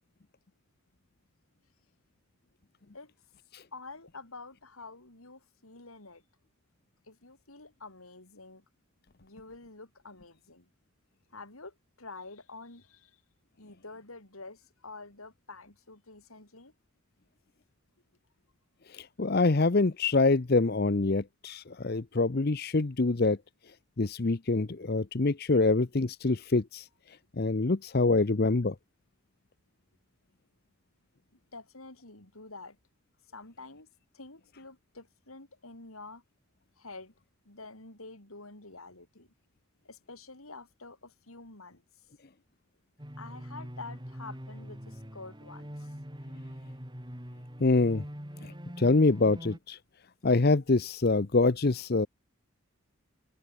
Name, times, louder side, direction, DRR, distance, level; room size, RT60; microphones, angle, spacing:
voice 1, 3.7-6.2 7.1-8.6 9.2-10.7 11.3-13.2 13.6-16.7 31.5-32.8 33.3-33.9 34.1-36.2 36.8-37.1 37.5-39.3 39.8-41.8 43.2-46.0, left 3 dB, 80° left, 5.4 m, -48 dB
voice 2, 18.9-23.4 24.0-26.9 27.4-28.7 47.6-48.0 48.4-49.8 50.2-52.1, left 3 dB, 45° left, 0.7 m, -25 dB
sound 1, 43.0-49.6, equal, 20° right, 4.0 m, -43 dB
open air
head